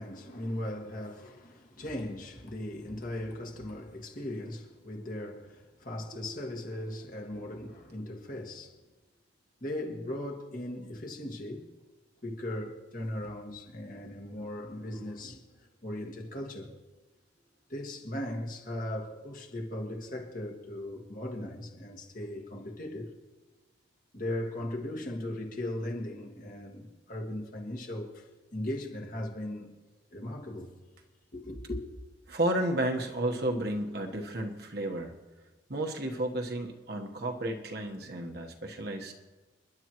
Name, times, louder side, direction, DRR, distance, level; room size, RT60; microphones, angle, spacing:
voice 1, 0.0-8.8 9.6-11.7 12.2-16.8 17.7-23.1 24.1-29.7 30.1-30.7 31.3-31.8, left 1 dB, 45° left, 1.8 m, -38 dB
voice 2, 32.3-35.1 35.7-39.1, right 1 dB, 55° right, 1.2 m, -32 dB
30.0 x 11.0 x 3.0 m
head